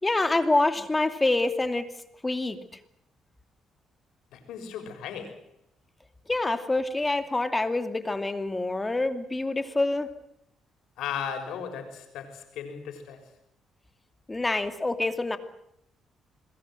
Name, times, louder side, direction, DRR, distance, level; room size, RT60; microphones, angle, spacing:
voice 1, 0.0-1.9 2.2-2.6 6.3-10.1 14.3-15.4, left 2 dB, 20° left, 2.6 m, -26 dB
voice 2, 4.3-5.4 11.0-13.2, left 7 dB, 85° left, 6.1 m, -36 dB
27.0 x 21.0 x 7.8 m
cardioid pair, 90°, 0 cm